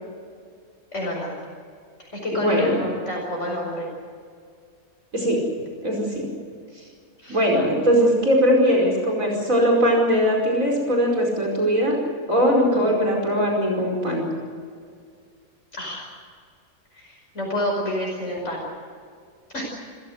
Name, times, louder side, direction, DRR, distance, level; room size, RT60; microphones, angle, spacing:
voice 1, 0.9-1.3 2.1-3.9 7.2-7.4 12.7-13.0 15.7-16.0 16.9-18.7 19.5-19.6, left 1 dB, 50° left, -2 dB, 5.6 m, -28 dB
voice 2, 2.3-2.7 5.1-5.4 5.8-6.3 7.3-12.0 12.3-14.3, equal, 65° right, -1 dB, 5.6 m, -20 dB
30.0 x 15.5 x 7.9 m, 2.2 s
omnidirectional pair, 1.5 m